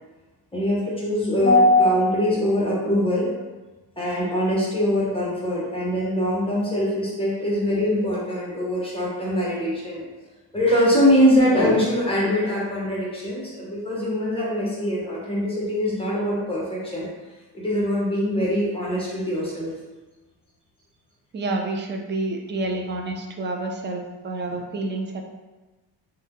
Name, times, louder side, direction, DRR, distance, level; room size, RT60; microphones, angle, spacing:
voice 1, 0.5-3.3 4.0-10.0 10.5-17.1 17.5-19.7, left 1 dB, 15° left, -5 dB, 0.9 m, -22 dB
voice 2, 21.3-25.2, right 2 dB, 30° right, 2 dB, 0.3 m, -29 dB
2.7 x 2.2 x 3.5 m, 1.2 s
cardioid pair, 110°, 42 cm